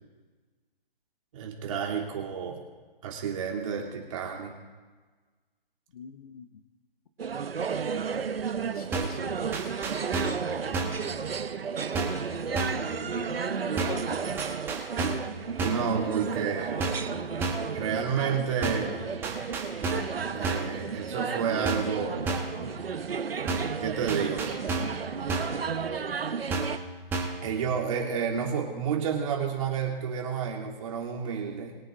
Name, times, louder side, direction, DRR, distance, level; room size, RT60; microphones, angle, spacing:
voice 1, 1.3-2.6 3.0-4.5 15.6-16.9 17.7-19.0 20.3-22.4 23.8-25.0 27.4-31.8, right 6 dB, 35° right, 0 dB, 2.9 m, -30 dB
voice 2, 5.9-6.6 8.5-9.5 12.8-14.2, left 6 dB, 40° left, 9 dB, 1.0 m, -45 dB
sound 1, 7.2-26.8, right 6 dB, 80° right, 1.0 m, -33 dB
sound 2, 8.9-9.2 9.5-10.4 10.7-11.1 11.9-12.3 12.5-12.9 13.8-14.1 14.4-15.3 15.6-15.9 16.8-17.1 17.4-17.7 18.6-18.9 19.2-20.2 20.4-20.8 21.6-22.0 22.3-22.6 23.5-23.8 24.1-25.0 25.3-25.6 26.5-26.8 27.1-27.4, right 3 dB, 10° right, 1.1 m, -31 dB
22.5 x 8.5 x 3.8 m, 1.4 s
hypercardioid pair, 155°, 29 cm